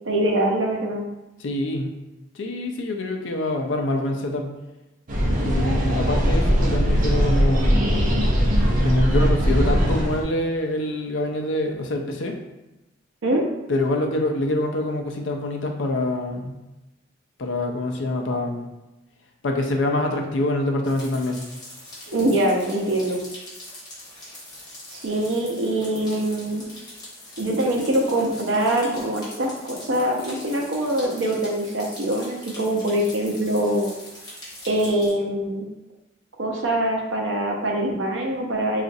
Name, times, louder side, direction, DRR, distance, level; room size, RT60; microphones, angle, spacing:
voice 1, 0.0-1.0 13.2-13.4 22.1-23.2 24.9-26.6 27.4-33.9 34.7-35.6 36.4-38.8, right 1 dB, 85° right, 0 dB, 0.6 m, -23 dB
voice 2, 1.4-1.9 2.3-4.5 5.4-7.9 8.8-12.4 13.7-16.6 17.4-18.7 19.4-21.4, left 1 dB, 80° left, 3 dB, 0.5 m, -25 dB
sound 1, 5.1-10.2, equal, 45° right, 0.6 m, -20 dB
sound 2, 20.8-35.1, left 1 dB, 20° left, 1.0 m, -42 dB
3.9 x 2.4 x 2.6 m, 1.0 s
head